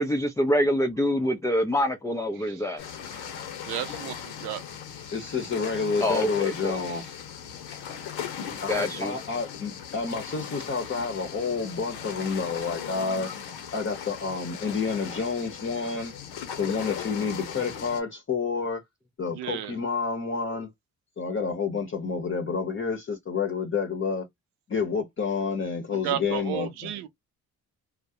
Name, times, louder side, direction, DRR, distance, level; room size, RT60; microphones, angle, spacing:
voice 1, 0.0-2.8 6.0-6.8 8.7-9.1, equal, 10° left, 0.4 m, -25 dB
voice 2, 2.4-2.7 3.7-4.6 19.3-19.8 25.9-27.1, right 11 dB, 80° right, 0.6 m, -33 dB
sound 1, 2.8-18.0, left 8 dB, 85° left, 0.9 m, -38 dB
voice 3, 5.1-7.0 8.6-13.3 13.7-16.1 16.6-18.8 19.2-20.7 21.2-24.3 24.7-26.9, left 5 dB, 30° left, 0.8 m, -29 dB
2.2 x 2.1 x 2.5 m
supercardioid pair, 60°, 39 cm